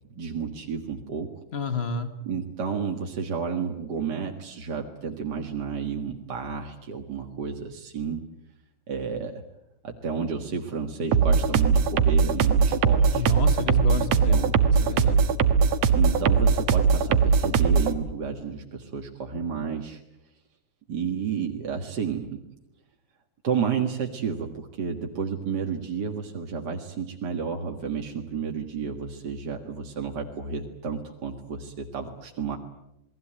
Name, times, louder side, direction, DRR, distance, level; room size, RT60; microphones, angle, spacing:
voice 1, 0.1-1.3 2.2-8.3 8.9-9.4 9.8-13.3 14.0-14.6 15.9-20.0 20.9-22.4 23.4-32.6, right 6 dB, 40° right, 2 dB, 1.7 m, -31 dB
voice 2, 1.5-2.1 13.1-15.2, left 2 dB, 70° left, 9 dB, 0.5 m, -30 dB
sound 1, 11.1-17.9, right 6 dB, 60° right, 2.3 m, -20 dB
28.5 x 20.5 x 8.9 m, 0.85 s
omnidirectional pair, 3.9 m